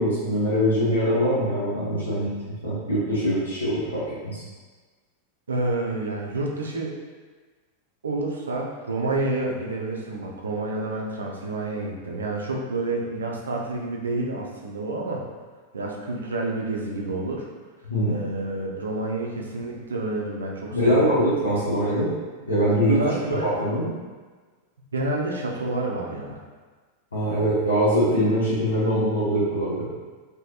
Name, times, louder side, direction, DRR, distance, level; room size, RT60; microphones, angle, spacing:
voice 1, 0.0-2.3 2.6-4.4 17.8-18.2 20.7-22.1 22.5-23.0 23.4-23.9 27.1-29.9, equal, 75° left, -10 dB, 1.0 m, -23 dB
voice 2, 5.5-6.9 8.0-15.2 15.7-17.5 18.1-21.1 23.0-23.7 24.9-26.4, right 2 dB, 70° right, -2 dB, 0.5 m, -29 dB
3.3 x 3.1 x 2.8 m, 1.4 s
figure-of-eight pair, 90°, 0 cm